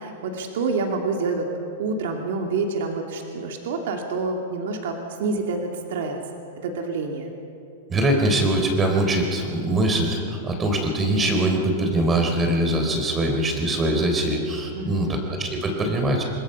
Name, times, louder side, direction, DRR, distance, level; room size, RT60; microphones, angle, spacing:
voice 1, 0.0-1.5 1.8-6.2 6.6-7.3 14.7-15.2, right 3 dB, 75° right, 2 dB, 2.6 m, -27 dB
voice 2, 7.9-16.2, right 1 dB, 20° right, 3 dB, 3.6 m, -22 dB
26.0 x 20.5 x 5.6 m, 2.5 s
supercardioid pair, 140°, 0 cm